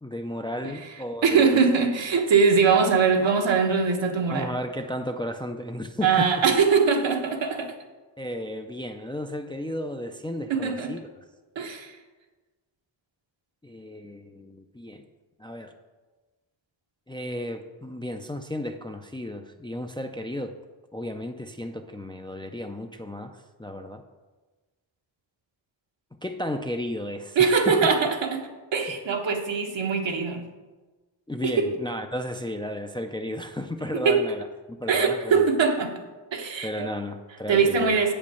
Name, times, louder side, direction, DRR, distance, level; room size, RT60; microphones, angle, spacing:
voice 1, 0.0-1.6 4.3-6.3 8.2-11.0 13.6-15.0 15.4-15.7 17.1-20.5 20.9-24.0 26.2-27.8 28.9-29.0 31.3-35.5 36.6-38.1, left 1 dB, 10° left, 6 dB, 0.3 m, -34 dB
voice 2, 1.2-4.5 6.0-7.7 10.5-10.9 11.6-11.9 27.3-30.5 31.4-31.7 33.9-34.3 34.9-36.0 36.3-36.9 37.5-38.1, right 5 dB, 75° right, 4 dB, 1.2 m, -22 dB
8.4 x 5.2 x 6.9 m, 1.2 s
wide cardioid pair, 160°, 45 cm